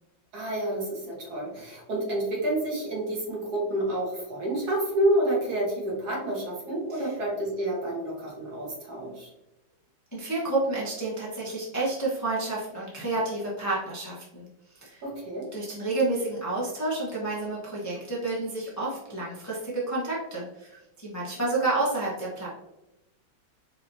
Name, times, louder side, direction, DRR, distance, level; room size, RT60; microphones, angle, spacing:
voice 1, 0.3-9.3 15.0-15.5, right 1 dB, 55° right, -4 dB, 1.8 m, -29 dB
voice 2, 10.1-14.5 14.7-15.0 15.5-22.5, right 2 dB, 20° left, -6 dB, 0.5 m, -30 dB
4.9 x 3.0 x 2.6 m, 0.96 s
omnidirectional pair, 2.1 m